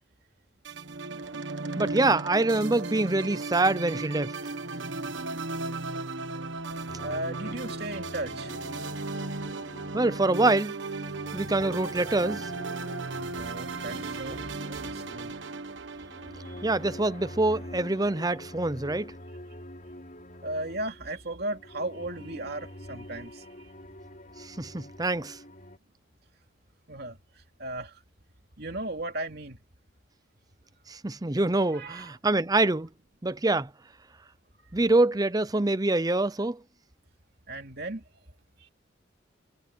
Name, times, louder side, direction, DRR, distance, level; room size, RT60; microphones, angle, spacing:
sound 1, 0.6-18.0, right 3 dB, 70° right, 1.3 m, -36 dB
voice 1, 1.8-4.4 9.9-10.7 11.3-12.5 16.6-19.1 24.4-25.4 30.9-32.9 33.2-33.7 34.7-36.6, right 2 dB, 20° right, 0.7 m, -25 dB
sound 2, 6.9-10.4 10.8-25.8, left 1 dB, 40° left, 5.4 m, -46 dB
voice 2, 7.0-8.5 13.3-15.4 20.4-23.7 26.9-28.0 28.6-29.6 31.7-32.2 37.5-38.0 38.6-38.7, right 1 dB, 55° right, 2.9 m, -36 dB
head